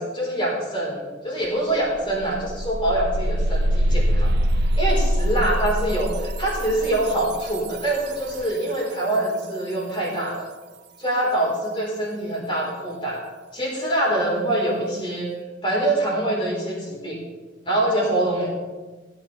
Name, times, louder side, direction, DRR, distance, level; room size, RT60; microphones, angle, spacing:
voice 1, 0.0-4.3 4.8-10.5 11.0-13.2 13.5-15.3 15.6-17.2 17.6-18.5, right 1 dB, 30° left, -4 dB, 4.4 m, -24 dB
sound 1, 1.4-1.5 1.8-8.6, equal, 65° right, 0.5 m, -24 dB
16.5 x 8.8 x 3.5 m, 1.3 s
head